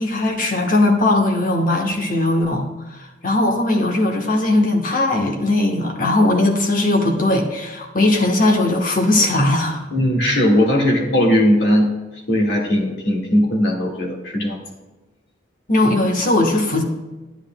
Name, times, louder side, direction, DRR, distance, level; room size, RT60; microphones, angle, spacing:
voice 1, 0.0-2.6 2.9-9.8 10.2-10.3 15.7-16.8, left 2 dB, 45° left, 3 dB, 1.1 m, -18 dB
voice 2, 9.9-11.9 12.3-14.6, equal, 65° left, -1 dB, 1.7 m, -18 dB
11.0 x 9.7 x 2.2 m, 1.1 s
head